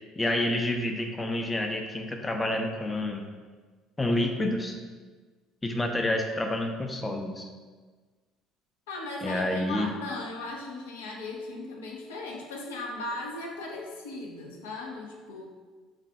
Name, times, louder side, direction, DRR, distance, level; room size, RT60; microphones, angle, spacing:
voice 1, 0.2-3.2 4.0-4.7 5.6-7.5 9.2-9.9, left 1 dB, 15° left, 3 dB, 0.4 m, -28 dB
voice 2, 8.9-15.5, left 2 dB, 75° left, 0 dB, 0.4 m, -37 dB
3.2 x 2.2 x 3.9 m, 1.4 s
figure-of-eight pair, 55°, 0 cm